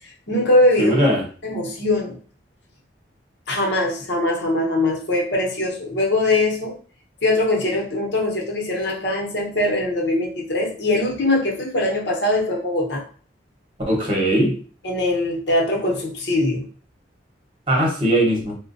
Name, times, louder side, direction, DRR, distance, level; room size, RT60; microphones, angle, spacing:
voice 1, 0.3-0.9 1.4-2.2 3.5-6.8 7.2-13.0 14.8-16.7, left 1 dB, 65° left, 0.9 m, -21 dB
voice 2, 0.8-1.2 13.9-14.6 17.7-18.5, equal, 30° right, 0.9 m, -19 dB
4.2 x 2.2 x 2.5 m
head